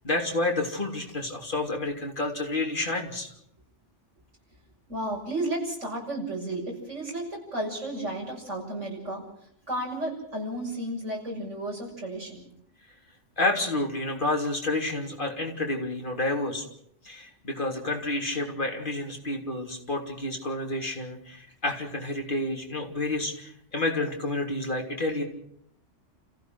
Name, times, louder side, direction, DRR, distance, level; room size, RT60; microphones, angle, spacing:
voice 1, 0.0-3.3 13.4-16.6 17.0-25.2, left 2 dB, 45° left, 1 dB, 3.5 m, -29 dB
voice 2, 4.9-9.2 9.7-12.4, right 1 dB, 85° right, -2 dB, 7.1 m, -33 dB
30.0 x 15.5 x 6.2 m, 0.69 s
omnidirectional pair, 1.2 m